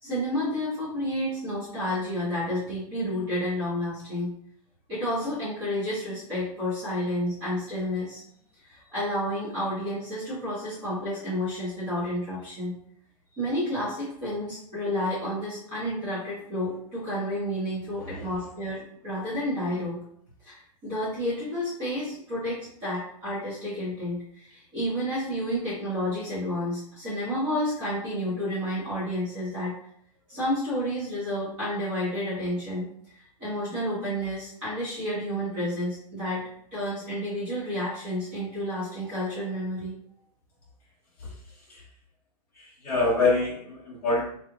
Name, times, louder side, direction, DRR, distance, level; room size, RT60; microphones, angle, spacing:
voice 1, 0.0-4.3 4.9-8.2 8.7-12.7 13.3-20.0 20.4-20.6 20.8-29.7 30.3-32.8 33.4-36.4 36.7-39.9, equal, 20° right, -9 dB, 1.1 m, -30 dB
voice 2, 42.6-44.2, left 3 dB, 10° left, -9 dB, 1.2 m, -26 dB
4.0 x 3.2 x 2.4 m, 0.65 s
hypercardioid pair, 180°, 20 cm